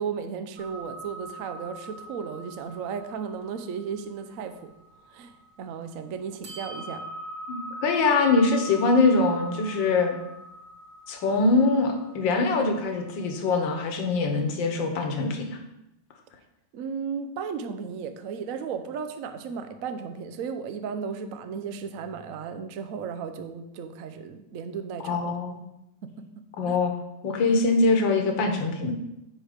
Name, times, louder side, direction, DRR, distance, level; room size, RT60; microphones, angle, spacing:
voice 1, 0.0-4.7 5.1-7.0 16.7-25.4 26.0-26.8, right 6 dB, 80° right, 9 dB, 0.7 m, -35 dB
sound 1, 0.6-5.7 6.4-13.9, right 1 dB, 60° right, 1.9 m, -42 dB
voice 2, 7.5-10.2 11.1-15.6 25.0-25.6 26.6-26.9 27.2-28.9, left 3 dB, 65° left, 4 dB, 1.8 m, -23 dB
8.9 x 4.8 x 5.1 m, 0.89 s
omnidirectional pair, 2.3 m